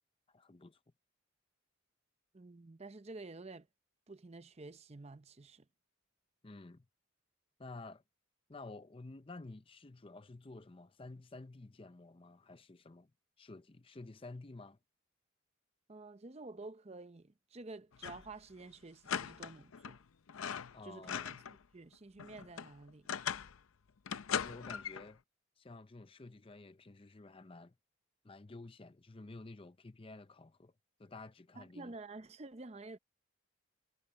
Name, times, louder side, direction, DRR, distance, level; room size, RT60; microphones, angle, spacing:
voice 1, 0.3-0.8 6.4-6.9 7.6-8.0 8.5-13.1 13.4-14.8 20.7-21.3 24.3-25.2 25.6-27.7 28.2-30.7 31.0-32.0, left 2 dB, 25° left, 0.6 m, -51 dB
voice 2, 2.3-3.7 4.1-5.7 15.9-20.0 20.8-21.4 21.7-23.1 31.6-33.0, right 3 dB, 30° right, 0.6 m, -50 dB
sound 1, 17.9-18.3 18.6-18.7 19.1-20.0 20.3-21.6 21.9-23.6 24.1-25.1, left 8 dB, 85° left, 0.6 m, -40 dB
head